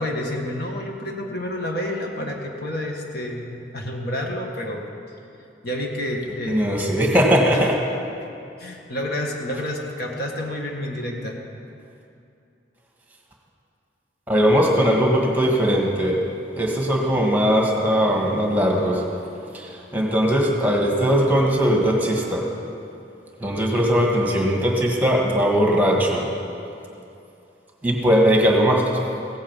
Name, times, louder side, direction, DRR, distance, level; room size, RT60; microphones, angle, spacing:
voice 1, 0.0-4.9 5.6-6.8 8.6-11.4, left 1 dB, 60° left, 0 dB, 1.7 m, -29 dB
voice 2, 6.5-7.7 14.3-16.2 16.6-19.0 19.5-22.5 23.4-26.3 27.8-28.8, equal, 10° right, 0 dB, 1.6 m, -19 dB
16.5 x 8.9 x 7.4 m, 2.6 s
head